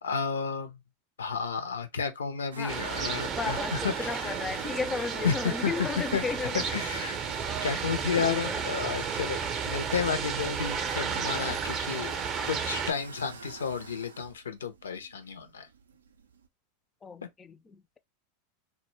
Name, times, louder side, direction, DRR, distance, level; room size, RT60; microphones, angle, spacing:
voice 1, 0.0-0.8 1.2-4.4 5.2-6.2 6.7-7.2 7.6-12.1 12.4-15.7, left 6 dB, 85° left, 0.5 m, -32 dB
sound 1, 2.5-16.5, right 5 dB, 85° right, 0.3 m, -46 dB
sound 2, 2.7-12.9, right 6 dB, 35° right, 0.5 m, -33 dB
voice 2, 3.4-6.7 7.6-7.9 8.2-8.6 11.5-11.6 17.0-18.0, left 5 dB, 20° left, 0.3 m, -35 dB
2.1 x 2.1 x 3.0 m
hypercardioid pair, 95°, 0 cm